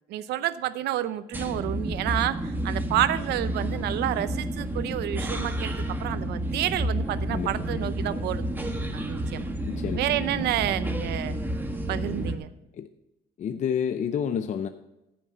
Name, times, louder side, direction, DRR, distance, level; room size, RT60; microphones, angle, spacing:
voice 1, 0.1-8.4 8.9-9.5 10.0-11.4 11.9-12.5, right 13 dB, 75° right, 14 dB, 0.7 m, -29 dB
sound 1, 1.3-12.4, right 1 dB, 10° right, 1.3 m, -30 dB
voice 2, 9.7-10.1 12.8-12.9 13.4-14.7, left 8 dB, 45° left, 9 dB, 0.6 m, -29 dB
14.0 x 6.0 x 5.6 m, 0.93 s
cardioid pair, 110°, 17 cm